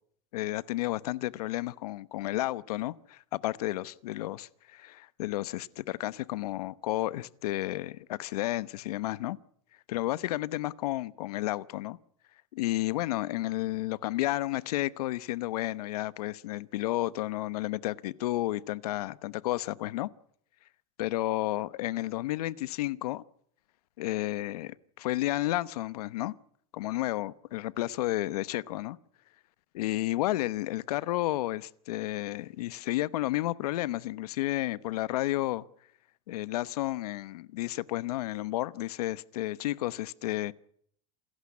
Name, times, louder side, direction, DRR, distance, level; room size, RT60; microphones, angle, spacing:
voice 1, 0.3-9.4 9.9-12.0 12.5-20.1 21.0-23.2 24.0-26.3 26.7-29.0 29.7-35.6 36.3-40.5, left 16 dB, 85° left, 1.0 m, -32 dB
28.0 x 15.0 x 9.6 m
supercardioid pair, 165°, 19 cm